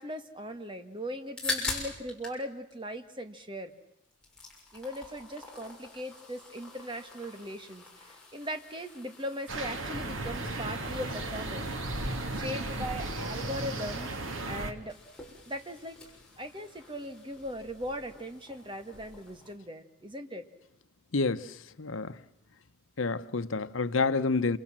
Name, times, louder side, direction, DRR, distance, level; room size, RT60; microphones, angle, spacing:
voice 1, 0.0-3.7 4.7-11.7 12.3-14.1 14.5-15.0 15.5-16.0 16.4-20.5, equal, 25° right, 1.9 m, -39 dB
Cracking open a cold one, 1.1-2.4 2.7-3.7 4.0-19.5, left 3 dB, 5° left, 7.0 m, -44 dB
sound 1, 9.5-14.7, right 2 dB, 90° right, 2.6 m, -35 dB
voice 2, 21.1-21.5 21.8-22.1 23.0-24.6, left 3 dB, 90° left, 1.0 m, -28 dB
28.0 x 28.0 x 7.5 m
head